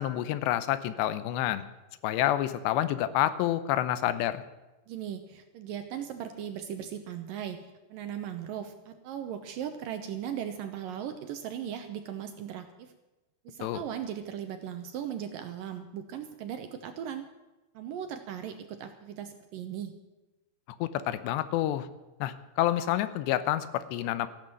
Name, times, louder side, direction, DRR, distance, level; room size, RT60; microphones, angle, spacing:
voice 1, 0.0-1.6 2.0-4.4 13.6-13.8 20.8-21.9 22.2-24.3, left 13 dB, 90° left, 13 dB, 3.0 m, -28 dB
voice 2, 4.9-12.9 13.5-17.3 17.8-20.0, right 9 dB, 75° right, 7 dB, 2.2 m, -38 dB
15.0 x 11.5 x 7.6 m, 1.1 s
omnidirectional pair, 4.8 m